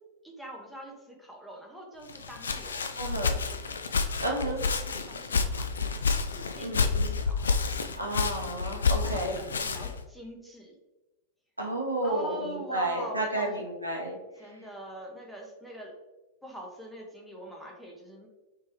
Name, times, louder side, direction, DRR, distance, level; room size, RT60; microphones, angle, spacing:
voice 1, 0.2-3.6 4.4-6.0 6.3-6.9 7.2-7.5 9.0-10.7 12.0-13.7 14.4-15.9 16.4-18.3, right 1 dB, ahead, -2 dB, 0.9 m, -43 dB
Walk footsteps, 2.1-10.0, left 5 dB, 70° left, 0.3 m, -29 dB
voice 2, 2.9-3.3 4.2-4.6 6.6-7.2 8.0-9.3 11.6-14.1, right 1 dB, 85° right, -1 dB, 0.8 m, -31 dB
3.4 x 3.2 x 3.1 m, 1.1 s
figure-of-eight pair, 90°, 0 cm